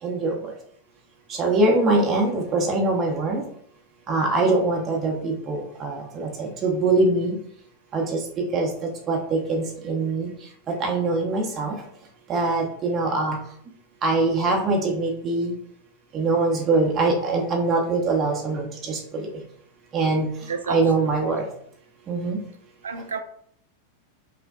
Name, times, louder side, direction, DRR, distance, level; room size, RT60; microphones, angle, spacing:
voice 1, 0.0-0.4 1.4-3.4 4.1-7.3 7.9-8.0 8.5-8.7 9.1-10.3 10.8-11.7 12.3-13.4 14.0-15.5 16.1-19.0 19.9-20.3 20.7-21.4 22.1-22.4, right 2 dB, 25° right, 0 dB, 0.7 m, -23 dB
voice 2, 20.5-21.1 22.8-23.2, right 5 dB, 70° right, 7 dB, 0.3 m, -30 dB
5.3 x 2.1 x 2.4 m, 0.66 s
figure-of-eight pair, 90°, 0 cm